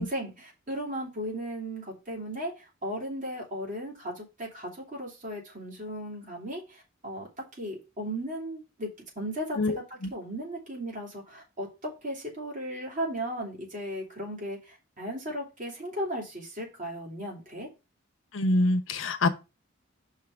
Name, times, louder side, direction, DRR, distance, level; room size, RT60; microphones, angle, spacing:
voice 1, 0.0-7.3 7.6-8.9 9.1-9.6 10.1-17.7, equal, 40° right, 3.1 m, -36 dB
voice 2, 9.6-10.1 18.3-19.3, left 2 dB, 90° left, 0.9 m, -26 dB
5.6 x 3.8 x 5.6 m
head